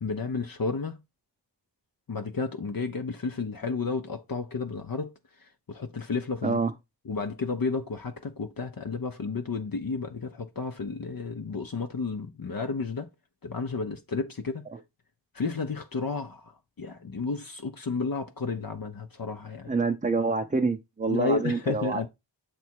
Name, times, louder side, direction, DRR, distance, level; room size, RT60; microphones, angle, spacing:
voice 1, 0.0-1.0 2.1-5.1 5.4-6.6 7.1-13.1 13.4-14.6 15.3-16.5 16.8-19.7 21.1-22.1, left 4 dB, 50° left, 0.7 m, -32 dB
voice 2, 19.7-22.0, right 4 dB, 20° right, 0.6 m, -27 dB
7.0 x 3.4 x 4.5 m
wide cardioid pair, 45°, 43 cm